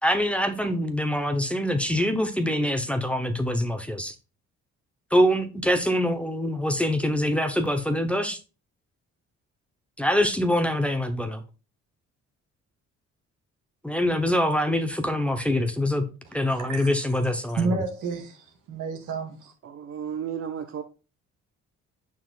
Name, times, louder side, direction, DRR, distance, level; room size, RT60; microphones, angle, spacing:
voice 1, 0.0-4.1 5.1-8.4 10.0-11.4 13.8-16.0 16.3-17.8, left 1 dB, 5° left, 0.9 m, -24 dB
voice 2, 16.5-16.9 17.6-19.5, right 4 dB, 85° right, 1.9 m, -30 dB
voice 3, 19.6-20.8, right 8 dB, 50° right, 0.7 m, -33 dB
7.3 x 5.9 x 2.4 m
cardioid pair, 90°, 30 cm